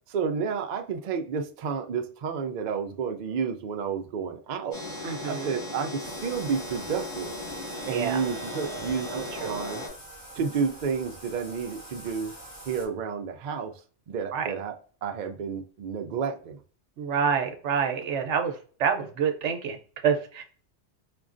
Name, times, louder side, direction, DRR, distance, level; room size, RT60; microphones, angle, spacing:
voice 1, 0.1-4.8 5.3-7.3 7.9-9.8 10.4-12.3 12.7-13.7 14.1-14.7 15.0-16.6, right 6 dB, 60° right, 5 dB, 0.5 m, -31 dB
sound 1, 4.7-9.9, left 1 dB, 65° left, 1.9 m, -37 dB
voice 2, 5.0-5.5 7.8-8.2 9.1-9.6 14.3-14.5 17.0-20.4, right 7 dB, 75° right, 6 dB, 1.0 m, -28 dB
Bathtub (filling or washing), 6.0-12.9, right 1 dB, 15° left, 1.6 m, -46 dB
5.1 x 2.3 x 2.4 m, 0.40 s
omnidirectional pair, 1.2 m